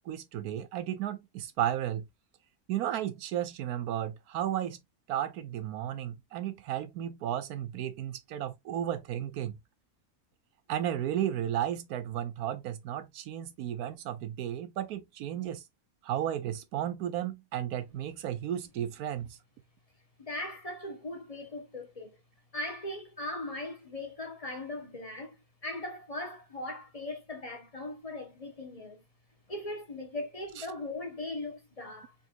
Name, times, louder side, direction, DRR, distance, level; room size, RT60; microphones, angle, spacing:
voice 1, 0.1-2.1 2.7-4.8 5.1-9.6 10.7-15.6 16.0-19.4 30.6-30.7, right 11 dB, 90° right, 1.2 m, -33 dB
voice 2, 20.2-22.2 22.5-25.3 25.6-29.0 29.5-32.1, left 2 dB, 30° left, 1.0 m, -39 dB
3.9 x 3.6 x 2.4 m
omnidirectional pair, 1.6 m